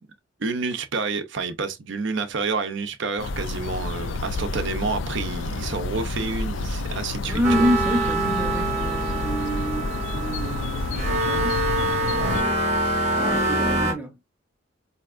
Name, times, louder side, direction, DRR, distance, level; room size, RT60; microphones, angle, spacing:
voice 1, 0.4-7.7, right 4 dB, 65° right, 0.6 m, -29 dB
sound 1, 3.2-12.4, left 3 dB, 70° left, 0.4 m, -29 dB
voice 2, 7.2-12.6 13.2-14.2, equal, 10° right, 0.6 m, -28 dB
sound 2, 7.4-13.9, right 2 dB, 35° right, 0.9 m, -25 dB
4.3 x 2.8 x 2.4 m
head